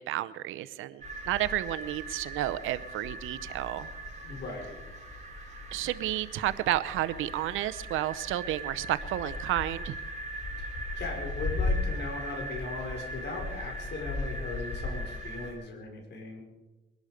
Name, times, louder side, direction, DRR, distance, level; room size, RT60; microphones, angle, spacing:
voice 1, 0.0-3.9 5.7-10.0, right 14 dB, 90° right, 15 dB, 0.7 m, -31 dB
sound 1, 1.0-15.6, left 3 dB, 30° left, 3.8 m, -39 dB
sound 2, 1.0-15.5, right 3 dB, 35° right, 6.1 m, -42 dB
voice 2, 4.2-4.8 10.6-16.4, left 3 dB, 60° left, 1 dB, 5.2 m, -38 dB
22.0 x 11.5 x 5.1 m, 1.1 s
cardioid pair, 90°, 20 cm